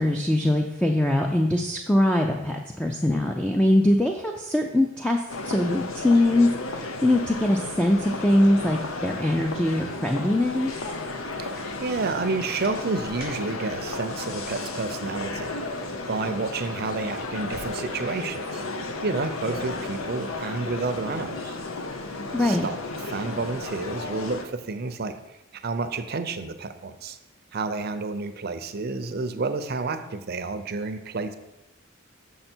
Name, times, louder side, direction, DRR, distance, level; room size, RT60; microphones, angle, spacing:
voice 1, 0.0-10.8 22.3-22.7, left 1 dB, 5° left, 2 dB, 0.4 m, -22 dB
sound 1, 5.3-24.4, left 2 dB, 80° left, 0.8 m, -33 dB
sound 2, 11.5-12.1 12.4-13.4, left 1 dB, 45° left, 1.8 m, -43 dB
voice 2, 11.8-15.5 16.1-18.6 19.0-21.6 22.3-22.8 23.1-25.1 25.5-27.2 27.5-31.3, right 3 dB, 50° right, 9 dB, 0.6 m, -30 dB
6.7 x 6.6 x 4.4 m, 0.95 s
head